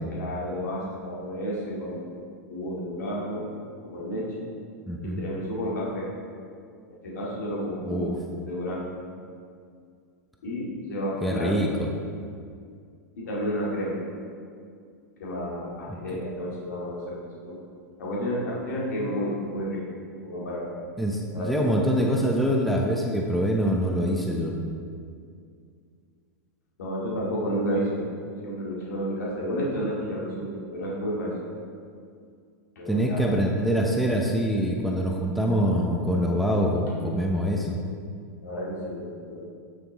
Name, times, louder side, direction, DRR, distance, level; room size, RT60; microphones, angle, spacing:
voice 1, 0.1-2.1 2.5-3.5 3.8-4.5 5.0-6.1 6.9-8.1 8.5-8.9 10.4-11.7 13.2-14.0 15.2-17.6 18.0-19.9 20.2-20.7 21.3-21.8 26.8-28.0 28.4-31.5 32.8-33.3 38.4-39.4, equal, 85° left, -5 dB, 2.3 m, -31 dB
voice 2, 4.9-5.2 7.8-8.1 11.2-11.9 15.9-16.0 21.0-24.6 32.9-37.8, equal, ahead, -1 dB, 0.7 m, -25 dB
11.0 x 5.9 x 3.5 m, 2.2 s
hypercardioid pair, 120°, 9 cm